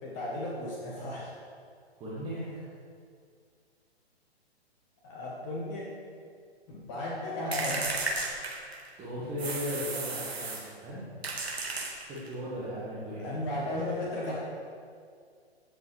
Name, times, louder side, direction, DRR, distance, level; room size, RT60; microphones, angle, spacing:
voice 1, 0.0-1.3 5.0-5.8 6.7-8.0 13.2-14.4, left 1 dB, 25° left, -4 dB, 1.1 m, -35 dB
voice 2, 2.0-2.7 9.0-11.2 12.1-13.4, equal, 15° right, -9 dB, 1.6 m, -37 dB
sound 1, 7.5-8.9 9.4-10.7 11.2-12.3, right 3 dB, 70° right, 1.7 m, -34 dB
16.0 x 5.5 x 3.3 m, 2.1 s
figure-of-eight pair, 125°, 32 cm